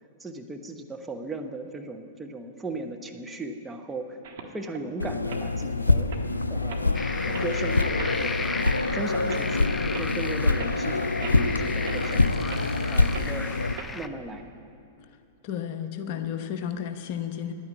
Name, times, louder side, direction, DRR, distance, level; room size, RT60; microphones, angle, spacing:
voice 1, 0.2-6.1 6.5-7.0 7.3-8.5 8.9-9.7 10.0-12.2 12.9-13.6 13.9-14.4, right 2 dB, 10° right, 3 dB, 0.9 m, -37 dB
sound 1, 4.2-4.8 5.2-5.4 5.9-6.2 6.7-6.9 7.3-7.5 8.0-8.1 8.6-8.8 9.3-9.4 9.9-10.1 10.6-10.7 11.2-11.5 11.8-12.0 12.5-12.6 13.1-13.3 13.8-13.9, right 6 dB, 60° right, 1.4 m, -39 dB
sound 2, 5.0-13.7, left 2 dB, 85° left, 0.4 m, -25 dB
sound 3, 6.9-14.1, left 3 dB, 15° left, 0.5 m, -35 dB
voice 2, 15.4-17.5, left 9 dB, 45° left, 7 dB, 0.9 m, -32 dB
10.0 x 9.6 x 8.3 m, 2.5 s
figure-of-eight pair, 100°, 0 cm